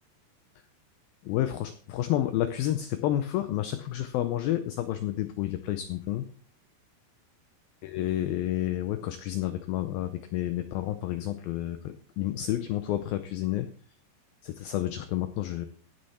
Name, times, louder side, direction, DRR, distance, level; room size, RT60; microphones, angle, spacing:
voice 1, 1.2-6.3 7.8-13.7 14.4-15.7, left 13 dB, 85° left, 10 dB, 2.1 m, -30 dB
16.5 x 6.5 x 4.2 m, 0.43 s
omnidirectional pair, 5.0 m